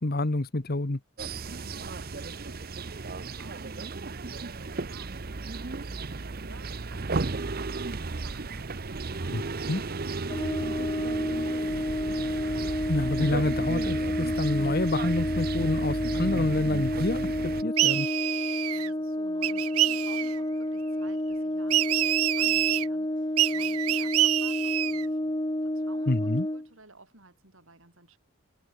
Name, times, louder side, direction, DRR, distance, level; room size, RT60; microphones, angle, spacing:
voice 1, 0.0-1.0 9.3-9.4 9.7-9.8 12.9-17.2 17.6-18.1 26.1-26.5, left 2 dB, 45° left, 1.2 m, -28 dB
sound 1, 1.2-17.6, right 3 dB, 45° right, 0.8 m, -34 dB
voice 2, 1.4-11.8 18.7-28.2, right 2 dB, 65° right, 6.2 m, -54 dB
Brass instrument, 10.3-26.7, left 1 dB, 20° left, 1.6 m, -30 dB
sound 2, 17.8-18.9 19.4-20.4 21.7-22.9 23.4-25.1, right 15 dB, 90° right, 0.7 m, -26 dB
head